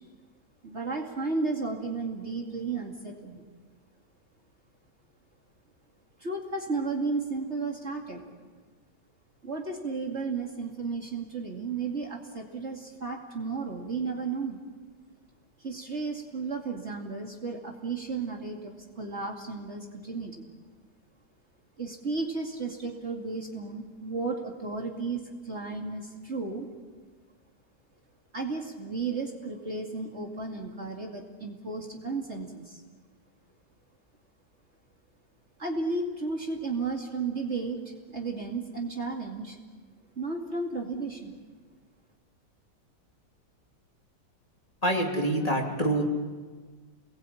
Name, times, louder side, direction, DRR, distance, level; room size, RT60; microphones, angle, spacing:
voice 1, 0.6-3.4 6.2-8.2 9.4-14.6 15.6-20.5 21.8-26.7 28.3-32.8 35.6-37.8 38.1-39.6 40.2-41.4, right 4 dB, 35° right, 0 dB, 2.7 m, -33 dB
voice 2, 44.8-46.0, right 1 dB, 20° left, 0 dB, 3.1 m, -26 dB
29.5 x 21.0 x 8.7 m, 1.5 s
omnidirectional pair, 2.0 m